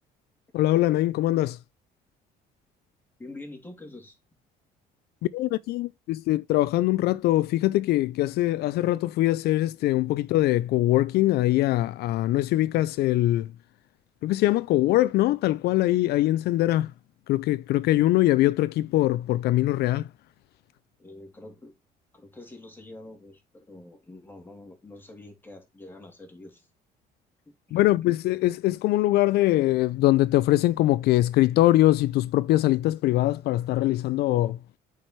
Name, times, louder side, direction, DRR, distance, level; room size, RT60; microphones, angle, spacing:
voice 1, 0.5-1.6 5.3-13.5 14.2-16.9 17.3-20.1 27.7-34.6, left 16 dB, 75° left, 0.4 m, -22 dB
voice 2, 3.2-4.2 21.0-21.7 22.1-26.7 27.5-27.8, left 2 dB, 10° left, 2.9 m, -46 dB
8.8 x 4.8 x 4.5 m
cardioid pair, 110°, 17 cm